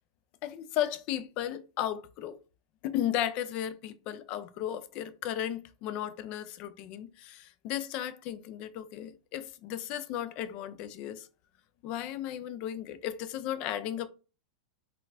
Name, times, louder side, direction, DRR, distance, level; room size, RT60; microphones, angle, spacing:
voice 1, 0.4-2.4 2.8-11.3 11.8-14.1, left 11 dB, 45° left, 0.4 m, -35 dB
3.9 x 2.3 x 2.6 m
supercardioid pair, 135°, 3 cm